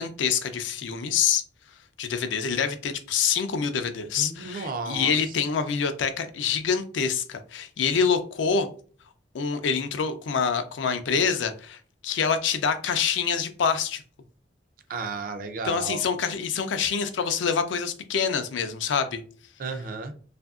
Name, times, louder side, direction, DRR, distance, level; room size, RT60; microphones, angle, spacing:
voice 1, 0.0-1.4 2.0-8.7 9.3-11.8 12.0-14.0 15.6-19.2, left 6 dB, 80° left, 9 dB, 0.4 m, -26 dB
voice 2, 4.2-5.1 14.9-16.0 19.6-20.1, right 4 dB, 50° right, 6 dB, 0.4 m, -33 dB
2.7 x 2.5 x 2.3 m, 0.41 s
head